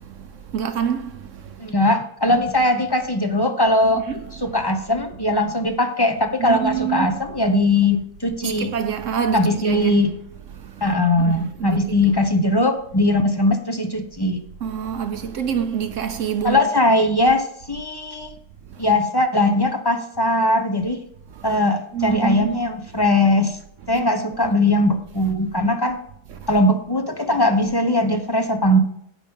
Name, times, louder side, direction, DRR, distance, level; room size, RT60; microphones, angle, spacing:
voice 1, 0.5-1.1 3.8-4.2 6.4-7.1 8.4-10.0 11.2-12.0 14.6-16.6 21.9-22.6 24.4-24.5, right 8 dB, 60° right, 0.9 m, -26 dB
voice 2, 1.6-4.0 4.4-8.7 9.3-10.1 10.8-14.4 16.4-18.3 18.8-21.0 21.4-23.6 23.9-26.0 26.5-28.8, left 1 dB, 25° left, 0.6 m, -20 dB
16.5 x 5.8 x 3.7 m
omnidirectional pair, 1.7 m